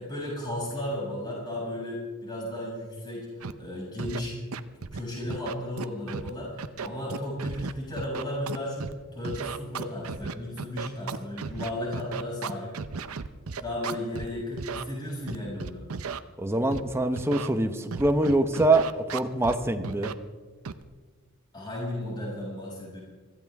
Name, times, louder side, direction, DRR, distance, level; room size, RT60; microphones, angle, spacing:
voice 1, 0.0-4.4 4.9-12.7 13.6-15.8 21.5-23.0, left 1 dB, 20° left, -5 dB, 6.4 m, -34 dB
Scratching (performance technique), 3.4-3.5 4.0-4.2 4.5-5.0 5.3-6.3 6.6-8.9 9.2-14.3 14.6-14.8 15.3-16.2 16.7-16.8 17.2-17.5 17.9-19.6 19.8-20.1 20.7-20.8, right 5 dB, 85° right, 0.7 m, -35 dB
voice 2, 16.4-20.1, right 2 dB, 10° right, 7 dB, 0.8 m, -24 dB
24.5 x 14.5 x 3.5 m, 1.4 s
head